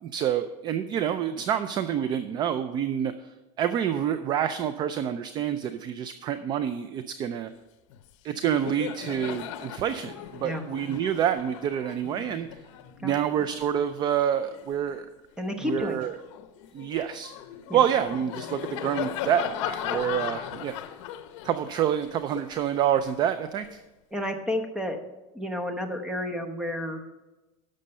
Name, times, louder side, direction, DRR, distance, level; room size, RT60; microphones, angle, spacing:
voice 1, 0.0-3.1 3.6-7.5 8.2-12.5 13.0-15.1 15.6-16.1 16.7-17.3 17.7-20.8 21.4-23.8, right 9 dB, 25° right, 11 dB, 0.4 m, -27 dB
Laughter, 7.9-8.1 8.4-15.1 15.6-23.8, left 11 dB, 70° left, 0.8 m, -38 dB
voice 2, 15.4-16.1 17.7-17.8 19.9-20.0 24.1-25.0 25.3-27.1, left 1 dB, 5° right, 5 dB, 0.9 m, -31 dB
11.5 x 6.6 x 5.4 m, 1.1 s
supercardioid pair, 160°, 16 cm